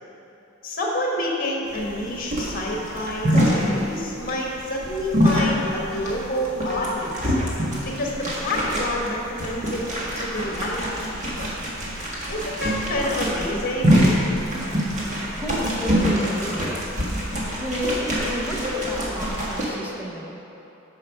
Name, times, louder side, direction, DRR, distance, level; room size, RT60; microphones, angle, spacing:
voice 1, 0.6-7.3 7.8-9.8 10.1-10.8 11.1-11.5 12.3-13.9, left 1 dB, 45° left, -2 dB, 1.6 m, -28 dB
sound 1, 1.7-19.7, equal, 35° right, 1.6 m, -25 dB
voice 2, 15.3-17.0 17.6-20.3, equal, 10° right, -2 dB, 0.9 m, -30 dB
8.9 x 5.5 x 5.9 m, 3.0 s
head